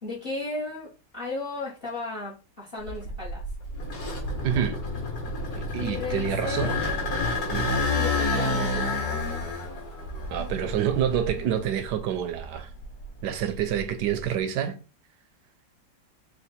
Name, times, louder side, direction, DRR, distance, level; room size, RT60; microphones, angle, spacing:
voice 1, 0.0-3.4 5.8-6.9 7.9-9.5, left 3 dB, 35° left, 1.3 m, -35 dB
sound 1, 2.9-11.9 12.4-14.2, left 2 dB, 60° left, 2.3 m, -29 dB
voice 2, 4.4-4.8 5.6-6.7 7.5-7.7 10.3-12.7 13.2-14.8, right 9 dB, 75° right, 1.1 m, -27 dB
4.4 x 2.5 x 4.2 m
omnidirectional pair, 1.9 m